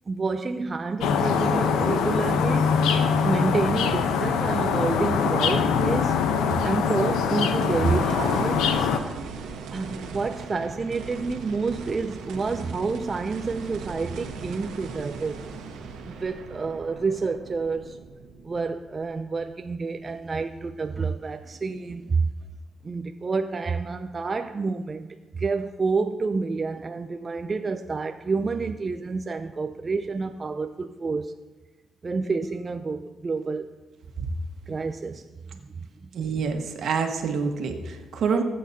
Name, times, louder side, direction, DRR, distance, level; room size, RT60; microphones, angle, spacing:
voice 1, 0.1-2.8 3.2-6.2 6.5-8.9 9.7-15.4 16.1-18.0 18.4-22.3 22.8-31.3 32.0-33.7 34.7-35.2 35.5-35.7 36.0-36.1, right 4 dB, 30° right, 0.5 m, -29 dB
sound 1, 1.0-9.0, left 6 dB, 90° left, 0.9 m, -23 dB
sound 2, 7.6-19.9 20.4-20.5 23.8-23.9, right 5 dB, 85° right, 1.4 m, -39 dB
voice 2, 36.1-38.4, right 5 dB, 65° right, 1.5 m, -27 dB
18.5 x 8.5 x 2.8 m
cardioid pair, 90°, 0 cm